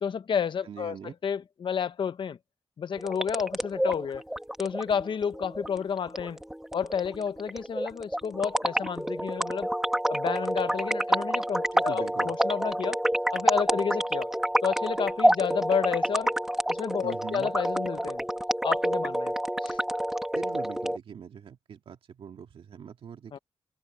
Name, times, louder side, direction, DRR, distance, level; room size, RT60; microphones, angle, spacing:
voice 1, 0.0-2.4 2.8-4.2 4.6-6.4 6.7-9.7 10.1-13.0 13.3-14.3 14.6-16.4 16.7-18.2 18.6-19.3 19.6-19.8 23.3-23.4, left 7 dB, 60° left, 0.9 m, -30 dB
voice 2, 0.7-1.2 11.7-12.3 17.0-17.5 20.3-23.4, right 8 dB, 75° right, 1.9 m, -42 dB
sound 1, 3.0-21.0, equal, 5° right, 1.5 m, -28 dB
cardioid pair, 100°, 9 cm